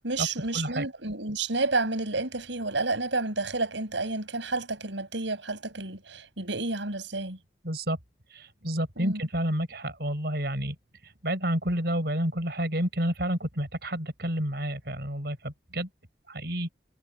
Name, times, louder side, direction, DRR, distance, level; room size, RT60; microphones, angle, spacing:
voice 1, 0.0-7.4 9.0-9.2, right 3 dB, 85° right, 5.8 m, -30 dB
voice 2, 0.5-0.9 7.6-8.0 8.3-10.8 11.0-15.9 16.3-16.7, right 1 dB, 60° right, 5.5 m, -30 dB
head